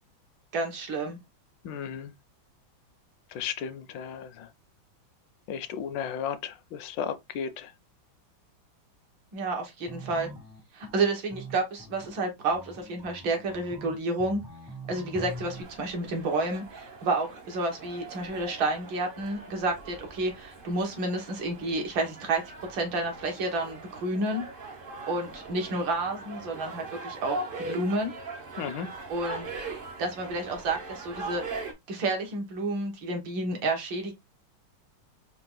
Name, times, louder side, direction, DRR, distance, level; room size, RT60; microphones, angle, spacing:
voice 1, 0.5-1.2 9.3-10.3 10.7-14.4 14.9-22.4 22.7-24.4 25.1-28.1 29.1-29.5 30.0-31.4 31.9-34.1, right 2 dB, 75° right, 2.0 m, -30 dB
voice 2, 1.6-2.1 3.3-4.5 5.5-7.7 28.6-28.9, left 8 dB, 75° left, 1.2 m, -34 dB
sound 1, 9.9-15.6, equal, 5° right, 0.3 m, -43 dB
sound 2, 15.1-31.7, right 3 dB, 55° right, 0.6 m, -41 dB
4.7 x 2.4 x 3.7 m
omnidirectional pair, 2.2 m